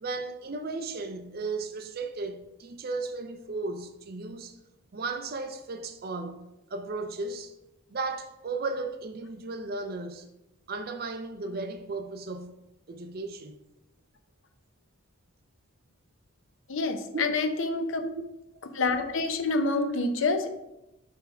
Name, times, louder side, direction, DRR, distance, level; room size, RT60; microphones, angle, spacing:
voice 1, 0.0-4.6 4.9-7.5 7.9-10.3 10.7-12.6 12.9-13.6 17.1-17.4 18.0-18.1, right 3 dB, 45° right, 0.4 m, -35 dB
voice 2, 16.7-18.0 18.7-20.5, left 3 dB, 60° left, 0.6 m, -27 dB
5.7 x 3.4 x 4.8 m
head